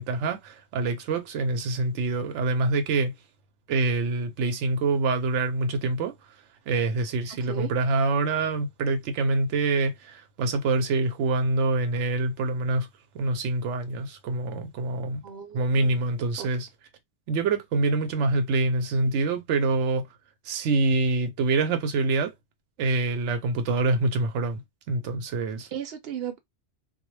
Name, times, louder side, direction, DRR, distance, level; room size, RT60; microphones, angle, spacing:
voice 1, 0.0-3.1 3.7-6.1 6.7-12.9 13.1-15.2 15.5-16.7 17.3-20.1 20.5-22.3 22.8-24.6 24.9-25.7, right 3 dB, 90° right, 0.9 m, -25 dB
voice 2, 7.4-7.7 15.2-16.0 16.4-16.5 25.7-26.4, right 9 dB, 65° right, 0.8 m, -36 dB
2.2 x 2.1 x 3.0 m
omnidirectional pair, 1.2 m